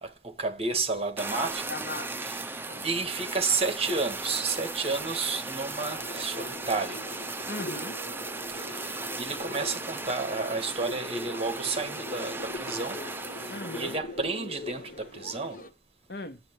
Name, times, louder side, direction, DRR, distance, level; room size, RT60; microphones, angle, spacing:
voice 1, 0.0-1.7 2.1-2.6 2.8-7.0 7.4-7.6 8.5-13.0 13.4-15.6, right 4 dB, 35° right, 1.6 m, -31 dB
Fire, 1.2-14.0, right 3 dB, 15° right, 0.6 m, -37 dB
voice 2, 1.7-2.3 2.7-2.8 7.5-8.0 13.5-14.0 16.1-16.4, left 2 dB, 70° left, 1.5 m, -38 dB
sound 1, 5.7-15.7, left 3 dB, 50° left, 1.3 m, -42 dB
8.9 x 8.1 x 3.2 m
head